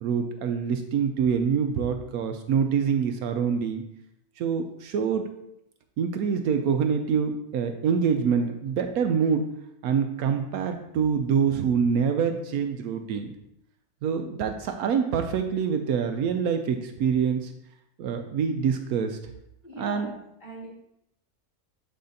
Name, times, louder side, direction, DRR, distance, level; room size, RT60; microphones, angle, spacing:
voice 1, 0.0-3.8 4.4-5.2 6.0-9.4 9.8-13.3 14.0-17.5 18.0-19.2 19.8-20.1, right 6 dB, 75° right, 6 dB, 1.0 m, -25 dB
voice 2, 19.6-20.7, right 1 dB, 35° left, -9 dB, 3.1 m, -41 dB
10.5 x 4.2 x 2.7 m, 0.78 s
omnidirectional pair, 1.6 m